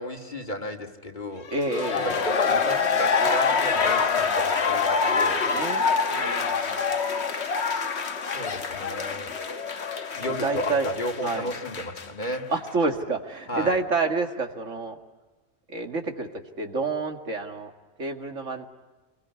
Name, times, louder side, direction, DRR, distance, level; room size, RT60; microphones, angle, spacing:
voice 1, 0.0-1.5 1.9-5.5 8.3-9.3 10.1-12.5 13.5-13.8, left 1 dB, 40° left, 3 dB, 2.1 m, -33 dB
sound 1, 1.5-12.4 12.7-12.8, left 5 dB, 65° left, 1.5 m, -26 dB
voice 2, 1.5-2.3 5.0-6.8 10.3-10.9 11.2-11.5 12.5-15.0 15.7-16.3 16.6-17.7 18.0-18.7, right 3 dB, 85° right, 4 dB, 2.4 m, -29 dB
27.5 x 22.0 x 9.6 m, 1.2 s
omnidirectional pair, 1.2 m